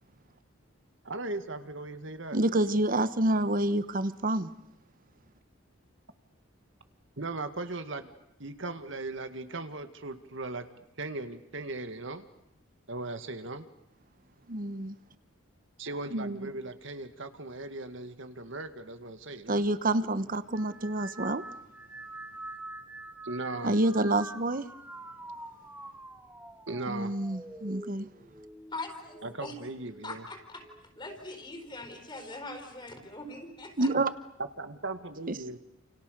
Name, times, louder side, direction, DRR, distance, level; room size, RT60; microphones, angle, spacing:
voice 1, 1.0-2.4 7.2-8.1 8.4-10.7 11.0-12.2 12.9-13.7 15.8-19.6 23.2-23.7 26.7-27.1 29.2-30.2 34.6-35.6, right 2 dB, 65° right, 9 dB, 2.1 m, -38 dB
voice 2, 2.3-4.5 14.5-15.0 19.5-21.4 23.6-24.7 26.9-28.1 33.8-34.1 35.3-35.4, right 1 dB, 45° right, 14 dB, 1.2 m, -28 dB
sound 1, 20.5-30.1 30.6-31.2 32.1-32.5, right 2 dB, 10° right, 1.9 m, -46 dB
voice 3, 28.7-29.6 30.0-30.7 31.0-33.9, left 2 dB, 25° left, 4 dB, 4.4 m, -42 dB
29.0 x 29.0 x 6.8 m, 0.82 s
head